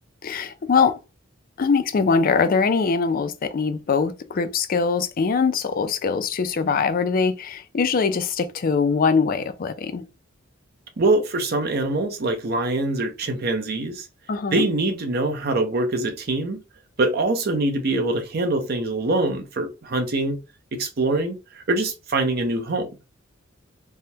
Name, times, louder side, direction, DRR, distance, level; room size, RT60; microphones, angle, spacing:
voice 1, 0.2-1.0 1.6-10.0 14.3-14.7, left 5 dB, 45° left, 0.4 m, -22 dB
voice 2, 11.0-14.1 14.5-16.6 17.0-20.4 20.7-22.9, right 2 dB, 50° right, 0.6 m, -24 dB
3.4 x 2.2 x 2.7 m
head